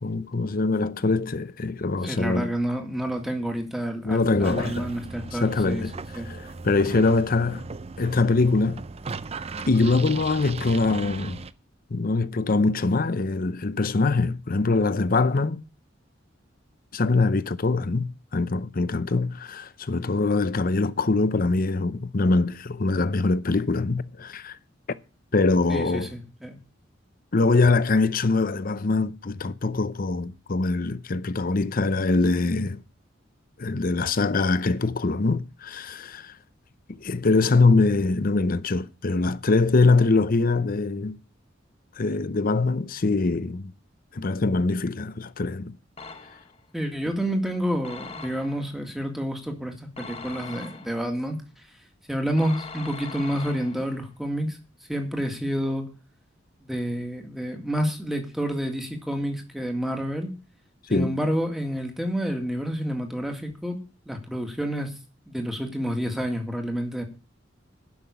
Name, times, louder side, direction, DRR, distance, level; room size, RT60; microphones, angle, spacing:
voice 1, 0.0-2.5 4.0-4.9 5.4-5.9 6.3-7.6 8.0-8.8 9.7-11.4 11.9-15.6 16.9-24.6 25.3-26.1 27.3-32.8 33.6-36.3 36.9-41.2 42.0-43.7 44.1-45.8 60.9-61.2, left 3 dB, 45° left, 0.7 m, -23 dB
voice 2, 2.0-5.8 6.1-6.3 25.7-26.6 46.7-51.4 52.1-54.6 54.9-55.9 56.7-60.3 60.9-63.8 64.1-64.9 65.3-67.0, equal, ahead, 2.0 m, -29 dB
sound 1, 4.4-11.5, right 4 dB, 30° right, 0.5 m, -37 dB
sound 2, 46.0-46.7 47.8-48.7 50.0-51.2 52.4-54.0, left 4 dB, 30° left, 1.1 m, -41 dB
11.0 x 6.0 x 8.4 m
head